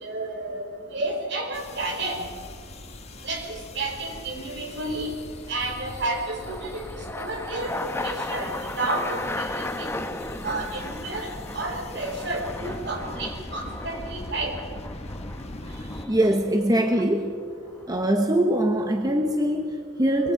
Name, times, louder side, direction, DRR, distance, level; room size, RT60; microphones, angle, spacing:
voice 1, 0.0-0.6 0.9-2.3 3.2-5.1 5.5-6.8 7.2-9.9 10.4-14.5, right 2 dB, 65° right, 3 dB, 4.3 m, -31 dB
sound 1, 0.7-1.2 5.1-19.6, left 2 dB, 15° left, 1.0 m, -36 dB
sound 2, 1.5-16.1, left 1 dB, 35° left, 1.5 m, -41 dB
voice 2, 16.1-17.3 17.9-20.3, right 1 dB, 20° right, 4 dB, 1.2 m, -22 dB
24.5 x 22.0 x 5.2 m, 2.1 s
head